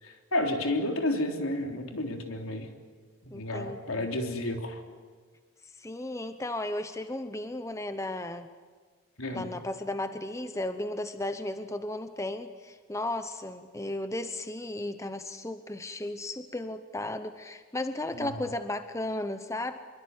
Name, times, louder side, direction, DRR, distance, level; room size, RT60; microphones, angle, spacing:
voice 1, 0.0-2.7 3.3-4.8 9.2-9.5 18.2-18.4, left 1 dB, 75° left, 4 dB, 3.5 m, -31 dB
voice 2, 3.3-4.2 5.7-8.5 9.3-19.8, left 1 dB, 15° left, 9 dB, 0.8 m, -35 dB
26.0 x 23.0 x 9.6 m, 1.5 s
head